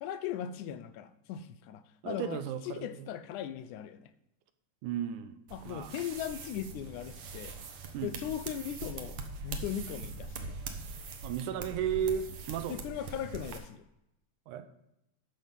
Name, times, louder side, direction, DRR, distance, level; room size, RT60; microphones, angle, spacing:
voice 1, 0.0-4.1 5.5-7.5 8.0-10.6 12.7-13.8, left 10 dB, 80° left, 13 dB, 2.0 m, -39 dB
voice 2, 2.0-3.1 4.8-5.9 7.9-8.1 11.2-12.8 14.5-14.7, right 9 dB, 90° right, 10 dB, 2.2 m, -34 dB
sound 1, 5.5-13.6, right 4 dB, 65° right, 1.5 m, -42 dB
11.5 x 6.5 x 5.4 m, 0.84 s
omnidirectional pair, 3.5 m